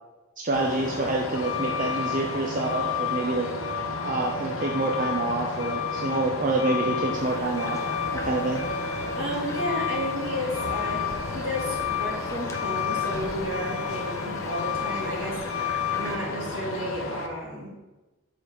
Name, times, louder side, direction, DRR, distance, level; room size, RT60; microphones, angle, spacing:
voice 1, 0.4-3.5 4.0-7.8 8.1-8.6, right 2 dB, 40° right, -1 dB, 0.6 m, -27 dB
Truck, 0.5-17.3, left 5 dB, 80° left, 0.7 m, -30 dB
sound 1, 7.1-16.2, left 2 dB, 15° left, 0.7 m, -42 dB
voice 2, 9.1-17.8, equal, 75° right, -3 dB, 1.8 m, -33 dB
5.1 x 4.0 x 5.8 m, 1.1 s
head